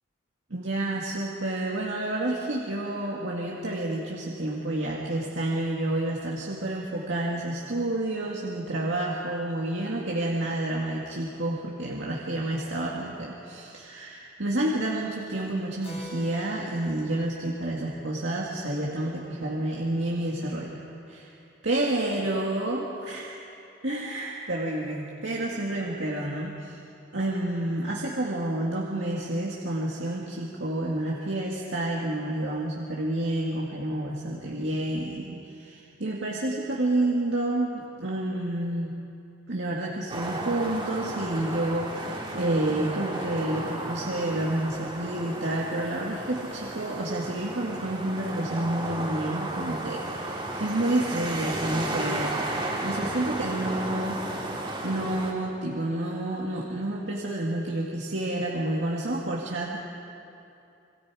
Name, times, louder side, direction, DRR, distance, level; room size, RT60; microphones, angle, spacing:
voice 1, 0.5-20.8 21.1-21.3 21.6-23.3 23.8-26.8 27.1-38.9 39.5-52.3 52.8-54.4 54.8-59.8, right 1 dB, 70° right, -3 dB, 2.0 m, -29 dB
Keyboard (musical), 15.8-19.9, right 1 dB, 30° left, 4.8 m, -48 dB
sound 1, 40.1-55.3, right 1 dB, 25° right, 2.9 m, -33 dB
27.0 x 23.0 x 4.9 m, 2.7 s
head